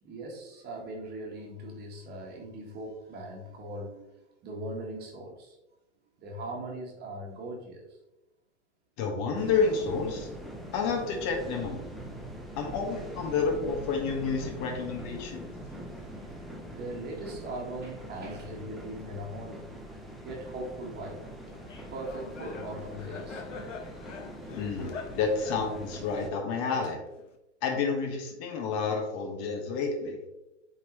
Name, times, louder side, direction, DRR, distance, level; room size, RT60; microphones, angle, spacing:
voice 1, 0.0-5.6 6.2-8.0 12.6-12.8 13.2-13.4 14.7-14.9 15.1-19.7 20.2-21.2 21.9-23.4, right 1 dB, 25° right, 0 dB, 1.6 m, -40 dB
voice 2, 9.0-10.3 10.7-11.8 12.5-15.5 24.6-27.0 27.6-30.2, left 5 dB, 40° left, 2 dB, 1.6 m, -30 dB
sound 1, 9.3-26.3, equal, ahead, 0.9 m, -43 dB
Laughter, 21.5-27.3, left 4 dB, 85° left, 1.0 m, -44 dB
9.0 x 3.9 x 3.1 m, 0.92 s
hypercardioid pair, 120°, 36 cm